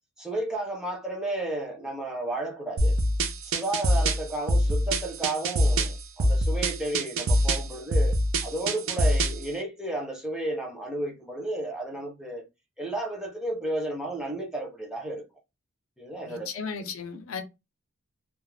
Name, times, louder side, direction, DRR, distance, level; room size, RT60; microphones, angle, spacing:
voice 1, 0.2-3.0 3.4-12.5 12.8-15.3 16.0-16.5, right 2 dB, 5° right, 0.5 m, -33 dB
sound 1, 2.8-9.5, equal, 60° right, 0.4 m, -24 dB
voice 2, 16.2-17.4, left 5 dB, 65° left, 0.5 m, -35 dB
2.3 x 2.0 x 3.1 m
head